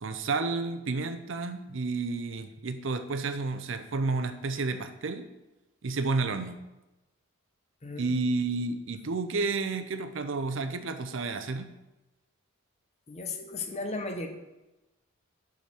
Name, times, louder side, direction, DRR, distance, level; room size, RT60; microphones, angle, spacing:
voice 1, 0.0-5.3 5.8-6.6 8.0-11.7, right 3 dB, 60° right, 9 dB, 0.6 m, -31 dB
voice 2, 7.8-8.1 13.1-14.3, left 3 dB, 30° left, 5 dB, 0.8 m, -35 dB
5.5 x 5.1 x 6.1 m, 1.0 s
head